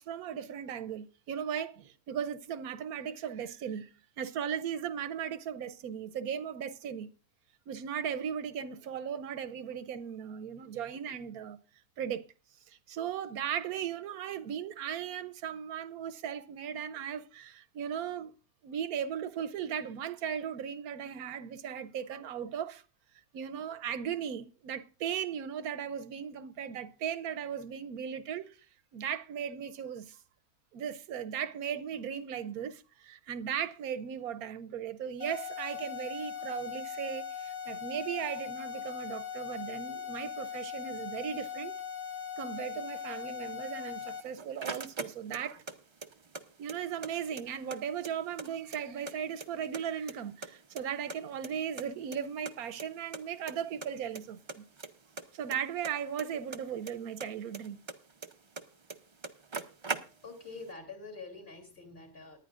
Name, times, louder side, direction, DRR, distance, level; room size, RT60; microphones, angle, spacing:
voice 1, 0.0-3.9 4.2-7.1 7.7-11.6 12.0-12.2 12.7-18.3 18.6-22.8 23.3-28.6 28.9-30.2 30.7-41.7 42.4-45.6 46.6-54.6 55.3-57.8, right 8 dB, 85° right, 1.2 m, -37 dB
sound 1, 35.2-44.2, left 7 dB, 60° left, 1.7 m, -40 dB
sound 2, 44.0-45.7 46.0-47.1 47.4-47.5 47.7-49.1 49.4-50.1 50.4-51.9 52.1-52.2 52.5-52.6 52.8-52.9 53.1-53.5 53.8-54.2 54.5-56.9 57.2-58.6 58.9-59.0 59.2-60.5, right 4 dB, 40° right, 0.4 m, -40 dB
voice 2, 60.2-62.4, left 3 dB, 40° left, 3.4 m, -46 dB
18.5 x 10.5 x 2.5 m
omnidirectional pair, 1.5 m